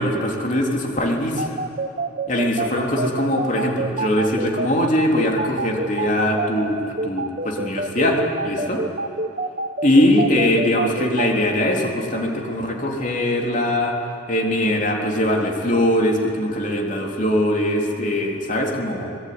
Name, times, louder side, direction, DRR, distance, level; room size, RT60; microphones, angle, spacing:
voice 1, 0.0-1.5 2.3-8.8 9.8-14.0 14.3-19.1, left 1 dB, 40° left, 1 dB, 3.5 m, -21 dB
sound 1, 1.4-11.3, right 3 dB, 40° right, 1.3 m, -26 dB
25.5 x 22.0 x 9.6 m, 2.6 s
head